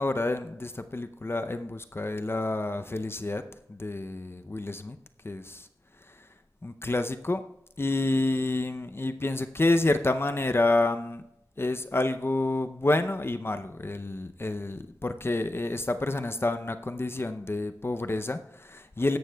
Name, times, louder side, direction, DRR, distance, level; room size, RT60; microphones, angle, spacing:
voice 1, 0.0-3.4 3.7-5.0 5.2-5.7 6.0-6.3 6.6-7.4 7.8-11.2 11.6-19.2, left 2 dB, 35° left, 8 dB, 0.6 m, -28 dB
15.5 x 11.5 x 2.3 m, 0.78 s
wide cardioid pair, 65°, 7 cm